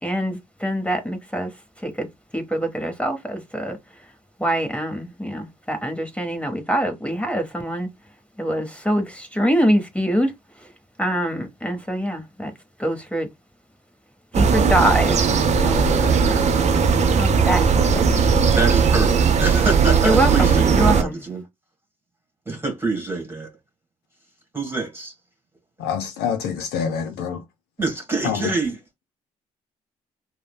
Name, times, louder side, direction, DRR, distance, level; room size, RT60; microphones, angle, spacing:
voice 1, 0.0-2.1 2.3-4.1 4.4-7.9 8.4-10.7 11.0-12.5 12.8-13.3 14.3-16.5 17.1-17.6 17.9-18.3 20.0-21.2, equal, 5° left, 0.8 m, -24 dB
sound 1, 14.3-21.0, right 5 dB, 40° right, 0.6 m, -18 dB
voice 2, 18.5-21.4 22.4-23.5 24.5-25.1 27.8-28.8, right 3 dB, 15° right, 1.5 m, -26 dB
voice 3, 25.8-27.4 28.2-28.5, left 7 dB, 70° left, 0.5 m, -26 dB
3.1 x 2.0 x 2.2 m
hypercardioid pair, 50°, 17 cm